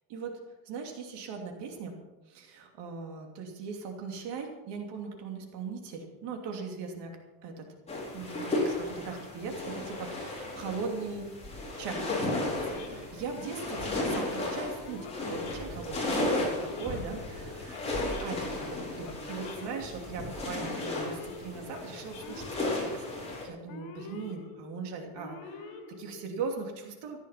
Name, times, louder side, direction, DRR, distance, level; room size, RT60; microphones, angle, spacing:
voice 1, 0.6-1.9 2.3-7.2 7.4-7.7 8.1-11.3 11.8-17.8 18.2-22.4 22.7-23.0 23.4-27.2, right 5 dB, 65° right, 3 dB, 2.9 m, -39 dB
sound 1, 7.9-23.4, left 2 dB, 15° left, 4.2 m, -34 dB
Male speech man speaking / Siren, 11.9-26.6, left 3 dB, 75° left, 2.7 m, -46 dB
15.0 x 11.0 x 5.8 m, 1.1 s
cardioid pair, 170°, 46 cm